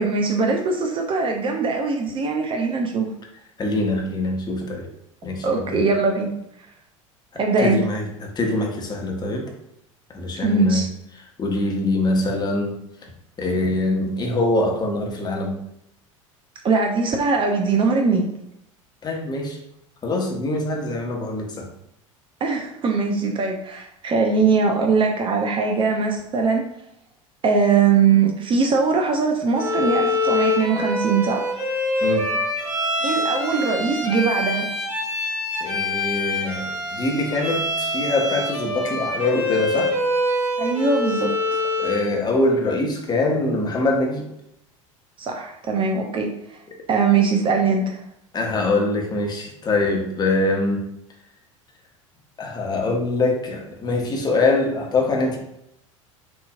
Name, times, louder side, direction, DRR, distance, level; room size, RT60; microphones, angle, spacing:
voice 1, 0.0-3.1 5.4-6.4 7.4-7.8 10.4-10.9 16.6-18.3 22.4-26.6 27.4-31.4 33.0-34.7 40.6-41.3 45.2-46.6 46.9-48.0, right 4 dB, 30° right, 2 dB, 0.6 m, -21 dB
voice 2, 3.6-4.9 5.2-5.8 7.6-9.5 10.1-10.8 11.4-12.8 13.4-15.6 19.0-19.6 20.0-21.7 32.0-32.3 35.6-39.9 41.8-44.2 48.3-50.8 52.4-55.4, left 2 dB, 25° left, 0 dB, 1.1 m, -23 dB
Bowed string instrument, 29.5-42.1, left 2 dB, 90° right, 1.4 m, -25 dB
6.1 x 2.9 x 2.4 m, 0.79 s
figure-of-eight pair, 75°, 17 cm